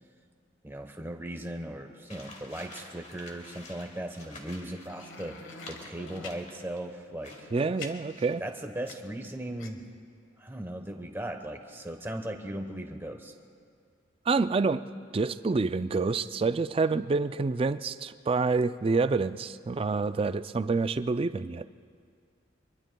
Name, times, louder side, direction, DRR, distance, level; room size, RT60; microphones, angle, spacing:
voice 1, 0.6-7.5 8.4-9.8 10.4-13.3, right 1 dB, 10° right, 5 dB, 1.0 m, -38 dB
sound 1, 2.1-6.9 7.2-7.7, left 2 dB, 35° left, 2.1 m, -49 dB
sound 2, 4.9-6.4 7.2-9.3 9.6-9.7, left 4 dB, 80° left, 1.3 m, -45 dB
voice 2, 7.5-8.4 14.3-14.8 15.1-21.6, right 4 dB, 30° right, 12 dB, 0.3 m, -27 dB
24.5 x 23.0 x 2.3 m, 2.2 s
head